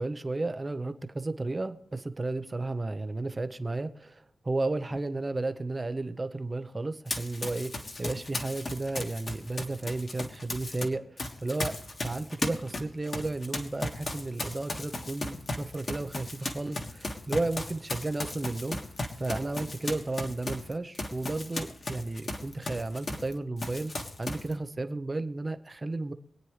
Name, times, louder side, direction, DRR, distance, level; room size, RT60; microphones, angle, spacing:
voice 1, 0.0-7.7 8.0-18.8 19.2-23.9 24.2-26.1, right 2 dB, 25° right, 10 dB, 0.8 m, -33 dB
Run, 7.1-10.9 11.2-23.3 23.6-24.5, left 2 dB, 40° left, 1.7 m, -36 dB
25.0 x 9.3 x 3.2 m, 0.71 s
wide cardioid pair, 130°, 0 cm